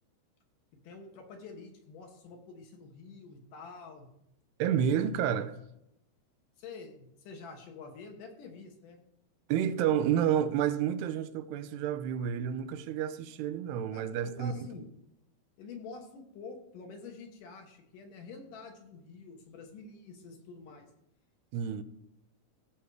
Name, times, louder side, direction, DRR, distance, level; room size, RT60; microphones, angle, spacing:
voice 1, 0.8-4.1 6.6-9.0 13.9-14.9 15.6-20.9, left 4 dB, 65° left, 2.7 m, -47 dB
voice 2, 4.6-5.5 9.5-14.7 21.5-21.8, right 9 dB, 90° right, 2.8 m, -30 dB
16.0 x 6.4 x 4.8 m
omnidirectional pair, 4.6 m